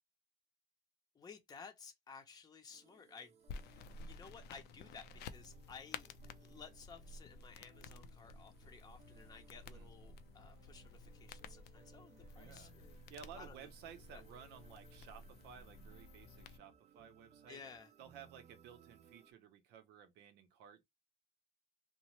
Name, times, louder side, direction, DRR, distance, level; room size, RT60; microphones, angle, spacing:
voice 1, 1.1-3.3 3.6-6.1 6.4-13.0 13.4-13.7 14.1-14.2 17.5-17.9, left 5 dB, 25° left, 0.6 m, -56 dB
sound 1, 2.7-19.3, right 7 dB, 40° right, 0.5 m, -66 dB
sound 2, 3.5-16.6, left 4 dB, 75° left, 0.4 m, -53 dB
voice 2, 12.3-17.6 18.0-20.8, right 8 dB, 90° right, 0.7 m, -56 dB
2.9 x 2.0 x 2.9 m
cardioid pair, 110°, 17 cm